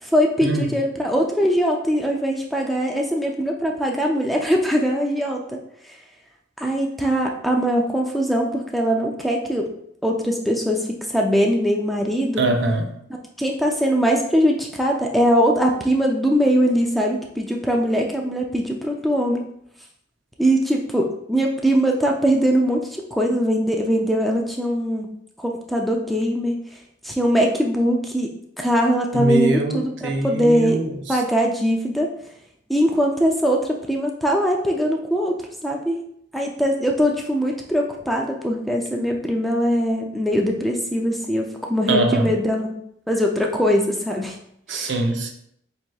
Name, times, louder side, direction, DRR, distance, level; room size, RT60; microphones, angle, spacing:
voice 1, 0.0-5.6 6.6-9.7 10.0-12.4 13.4-19.4 20.4-25.1 25.4-26.6 27.0-28.3 28.6-30.8 31.1-32.1 32.7-35.4 35.6-36.0 36.3-42.8 43.1-44.4 44.7-44.9, equal, ahead, 0 dB, 0.3 m, -21 dB
voice 2, 12.4-12.9 29.1-31.2 41.9-42.3 44.7-45.3, right 2 dB, 70° right, 4 dB, 0.6 m, -22 dB
7.5 x 2.8 x 2.3 m, 0.73 s
head